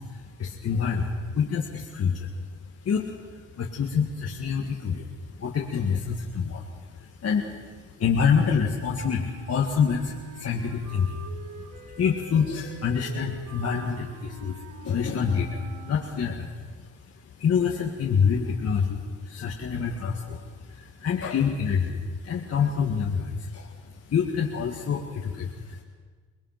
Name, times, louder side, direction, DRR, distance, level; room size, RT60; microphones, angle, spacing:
voice 1, 0.0-2.4 2.8-11.3 11.6-16.9 17.4-25.8, left 6 dB, 55° left, -1 dB, 2.0 m, -27 dB
Wind instrument woodwind instrument, 9.1-16.4, right 5 dB, 80° right, 2.8 m, -46 dB
23.5 x 20.0 x 6.0 m, 1.5 s
cardioid pair, 90°, 30 cm